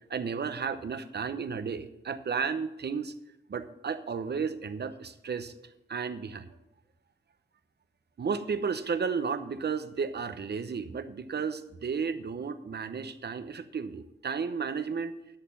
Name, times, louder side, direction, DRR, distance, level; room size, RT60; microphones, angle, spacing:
voice 1, 0.1-3.1 3.5-5.5 5.9-6.5 8.2-15.1, right 5 dB, 60° right, 11 dB, 0.8 m, -33 dB
11.5 x 6.6 x 5.8 m, 0.87 s
wide cardioid pair, 90°, 19 cm